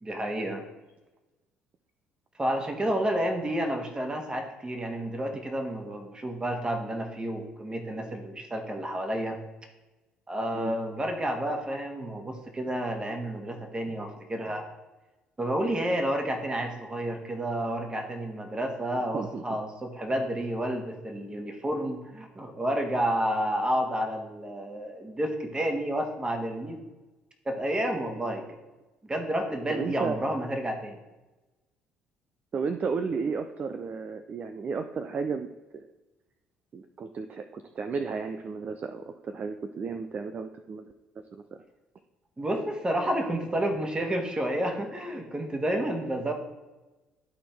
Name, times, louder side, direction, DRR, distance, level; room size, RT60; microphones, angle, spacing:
voice 1, 0.0-0.6 2.4-9.4 10.3-14.6 15.4-26.8 27.4-28.6 29.0-31.0 42.4-46.3, right 1 dB, 20° right, 4 dB, 1.6 m, -30 dB
voice 2, 18.9-19.6 29.7-30.2 32.5-35.5 35.7-35.9 36.7-40.9 41.3-41.4, right 5 dB, 40° right, 8 dB, 0.5 m, -33 dB
11.5 x 4.2 x 3.4 m, 1.1 s
hypercardioid pair, 55°, 4 cm